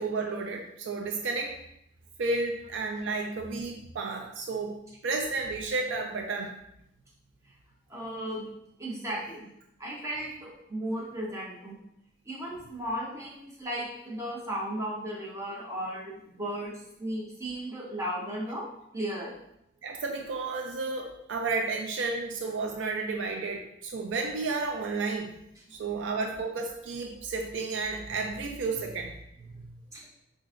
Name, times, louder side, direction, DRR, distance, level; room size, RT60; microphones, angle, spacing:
voice 1, 0.0-1.5 2.2-6.5 19.8-25.4 25.7-29.1 29.4-29.7, right 3 dB, 70° right, 2 dB, 0.4 m, -32 dB
voice 2, 7.9-8.5 8.8-9.5 9.8-11.8 12.3-16.7 17.0-18.6 18.9-19.3 29.9-30.0, right 1 dB, 15° right, -5 dB, 0.8 m, -35 dB
4.7 x 2.5 x 2.5 m, 0.77 s
head